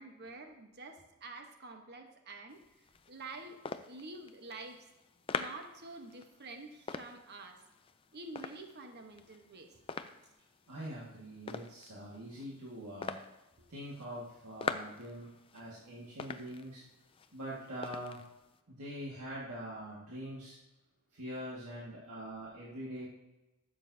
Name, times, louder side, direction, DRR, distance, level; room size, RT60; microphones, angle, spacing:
voice 1, 0.0-2.6 3.1-3.6 3.9-4.8 5.3-7.6 8.1-9.7, right 2 dB, 45° right, 4 dB, 1.0 m, -48 dB
sound 1, 2.5-18.6, left 5 dB, 25° left, 0.3 m, -45 dB
voice 2, 10.7-13.2 13.7-15.3 15.5-16.8 17.3-18.2 18.7-20.6 21.1-23.1, equal, 85° right, -6 dB, 1.8 m, -43 dB
13.0 x 7.2 x 2.7 m, 1.0 s
head